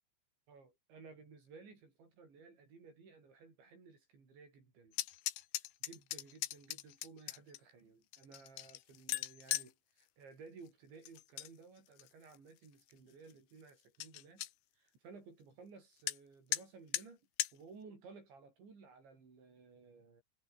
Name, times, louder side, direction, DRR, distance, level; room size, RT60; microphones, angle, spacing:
voice 1, 0.5-5.0 5.8-14.5 14.7-17.3 17.5-20.2, right 4 dB, 60° right, 9.3 m, -57 dB
sound 1, 4.9-7.6 8.1-9.7 11.0-11.5 11.9-12.4 12.9-13.0 13.3-13.4 13.7-13.8 14.0-14.5 16.1-16.2 16.5-16.6 16.9-17.1 17.4-17.5, left 16 dB, 75° left, 3.3 m, -39 dB
omnidirectional pair, 5.9 m